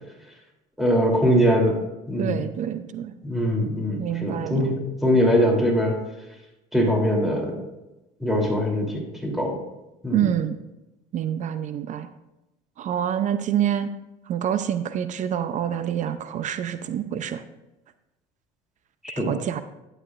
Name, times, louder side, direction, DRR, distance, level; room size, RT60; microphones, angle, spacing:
voice 1, 0.8-1.8 2.1-2.4 3.2-5.9 6.7-7.6 8.2-9.6 10.0-10.3 19.0-19.3, equal, ahead, -1 dB, 3.3 m, -22 dB
voice 2, 2.2-3.1 4.0-4.7 10.1-10.6 11.1-12.1 12.8-13.9 14.3-17.4 19.2-19.6, right 10 dB, 50° right, 11 dB, 0.7 m, -27 dB
11.0 x 8.7 x 2.6 m, 0.96 s
supercardioid pair, 85°, 16 cm